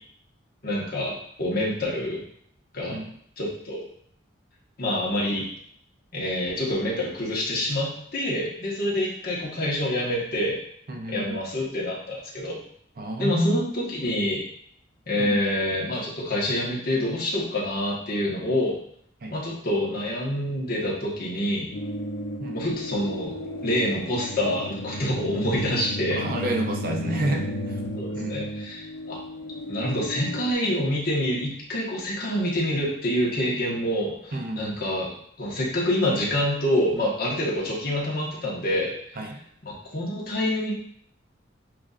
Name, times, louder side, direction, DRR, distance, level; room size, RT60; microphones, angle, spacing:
voice 1, 0.6-1.1 1.4-2.2 2.7-3.0 3.4-3.8 4.8-5.5 6.1-10.6 11.1-12.6 13.2-14.4 15.1-18.8 19.3-21.7 22.5-23.3 23.6-26.2 28.0-29.2 29.7-38.9 39.6-40.7, left 1 dB, 50° left, -5 dB, 1.3 m, -27 dB
voice 2, 10.9-11.4 13.0-13.6 15.2-15.5 19.2-19.3 22.4-22.8 26.1-27.8 28.1-28.5 34.3-34.8 39.2-39.4, right 1 dB, 50° right, 3 dB, 0.5 m, -30 dB
sound 1, 21.7-30.5, left 1 dB, 90° left, 0.7 m, -34 dB
7.3 x 2.7 x 2.4 m, 0.66 s
head